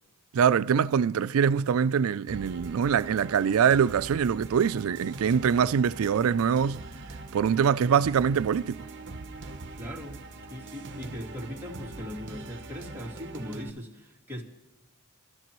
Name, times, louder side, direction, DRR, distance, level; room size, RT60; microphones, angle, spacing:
voice 1, 0.3-6.8 7.3-8.8, right 7 dB, 85° right, 0.4 m, -24 dB
sound 1, 2.3-13.7, right 2 dB, 60° right, 0.9 m, -42 dB
voice 2, 9.7-10.2 10.5-14.4, equal, 10° right, 2.4 m, -39 dB
26.0 x 13.0 x 3.0 m
head